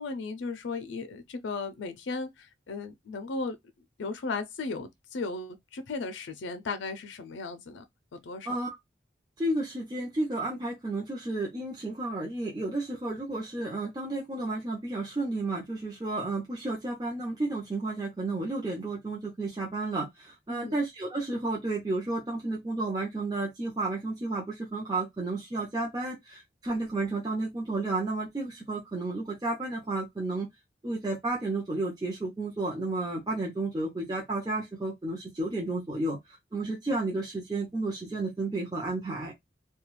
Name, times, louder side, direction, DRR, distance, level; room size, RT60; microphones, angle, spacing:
voice 1, 0.0-3.6 4.0-7.8 8.1-8.6 20.5-20.8, left 3 dB, 90° left, 0.4 m, -36 dB
voice 2, 9.4-30.5 30.8-36.2 36.5-39.3, right 2 dB, 20° right, 0.6 m, -32 dB
2.3 x 2.2 x 3.0 m
head